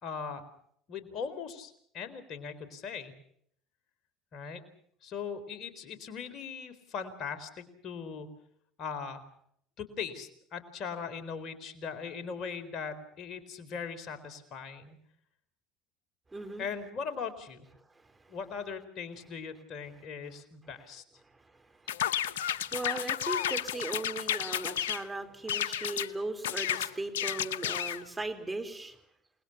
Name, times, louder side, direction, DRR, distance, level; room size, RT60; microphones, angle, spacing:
voice 1, 0.0-0.4 0.9-3.1 4.3-4.6 5.0-8.4 8.8-9.2 9.8-15.0 16.6-17.7 18.3-21.0, left 6 dB, 50° left, 9 dB, 4.1 m, -39 dB
voice 2, 16.3-16.7 17.9-18.4 21.2-29.0, right 2 dB, 15° right, 7 dB, 4.3 m, -39 dB
sound 1, 21.9-25.0 25.5-26.1 26.4-28.0, left 10 dB, 85° left, 0.8 m, -32 dB
29.5 x 20.5 x 6.0 m, 0.66 s
hypercardioid pair, 75°, 0 cm